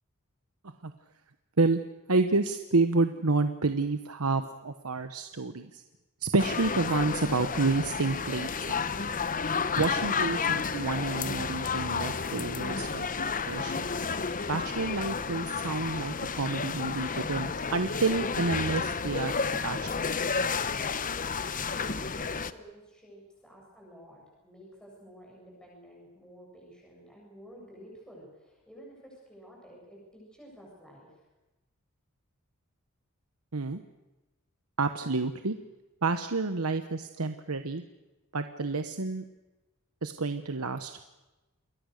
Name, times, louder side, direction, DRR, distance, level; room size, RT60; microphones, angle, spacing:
voice 1, 2.1-5.8 6.2-8.8 9.8-13.1 13.4-13.9 14.5-20.2 33.5-33.8 34.8-35.6 36.0-37.8 38.3-39.2 40.0-41.0, right 3 dB, 85° right, 8 dB, 1.1 m, -29 dB
sound 1, 6.4-22.5, left 5 dB, 40° left, 1.0 m, -31 dB
voice 2, 21.6-31.3, equal, 5° left, -3 dB, 7.6 m, -52 dB
28.0 x 21.5 x 6.6 m, 1.1 s
head